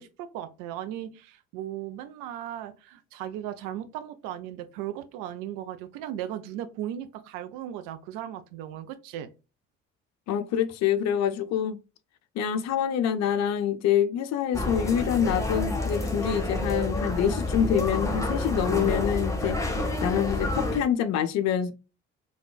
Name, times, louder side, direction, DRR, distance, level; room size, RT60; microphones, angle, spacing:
voice 1, 0.0-9.3, right 11 dB, 60° right, 0.5 m, -37 dB
voice 2, 10.3-11.8 12.4-19.6 20.0-21.7, left 9 dB, 45° left, 0.5 m, -26 dB
sound 1, 14.5-20.8, left 2 dB, 10° left, 0.9 m, -28 dB
3.6 x 2.3 x 2.3 m
figure-of-eight pair, 45°, 37 cm